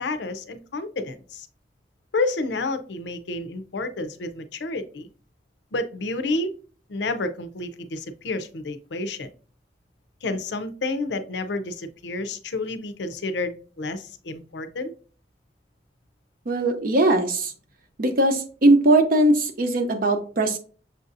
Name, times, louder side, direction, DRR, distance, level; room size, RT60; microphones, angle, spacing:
voice 1, 0.0-1.5 2.1-5.1 5.7-6.5 6.9-9.3 10.2-14.9, left 2 dB, 75° left, 10 dB, 0.5 m, -30 dB
voice 2, 16.5-17.5 18.0-20.6, right 1 dB, 55° right, 7 dB, 0.7 m, -20 dB
6.7 x 2.6 x 2.5 m, 0.40 s
head